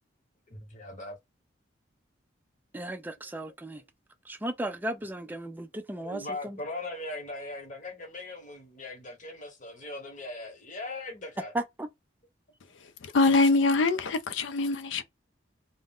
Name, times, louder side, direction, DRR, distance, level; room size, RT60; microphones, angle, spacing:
voice 1, 0.5-1.2 3.8-3.9 6.0-11.5, left 2 dB, 40° left, 0.9 m, -40 dB
voice 2, 2.7-3.8 4.2-6.6 11.5-11.9, right 1 dB, 10° right, 0.3 m, -35 dB
voice 3, 13.0-15.0, left 3 dB, 65° left, 0.4 m, -24 dB
2.4 x 2.0 x 3.5 m
head